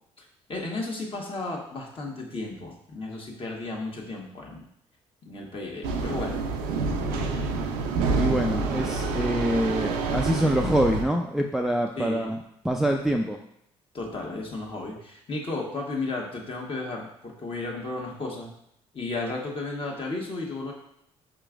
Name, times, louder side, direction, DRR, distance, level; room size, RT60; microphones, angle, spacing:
voice 1, 0.2-4.6 5.2-6.4 12.0-12.3 13.9-18.5 18.9-20.7, left 2 dB, 40° left, -1 dB, 1.2 m, -34 dB
sound 1, 5.8-11.0, right 3 dB, 75° right, 0.5 m, -27 dB
voice 2, 8.2-12.4 12.6-13.4, right 1 dB, 5° right, 2 dB, 0.4 m, -25 dB
4.9 x 3.0 x 2.4 m, 0.74 s
hypercardioid pair, 55°, 15 cm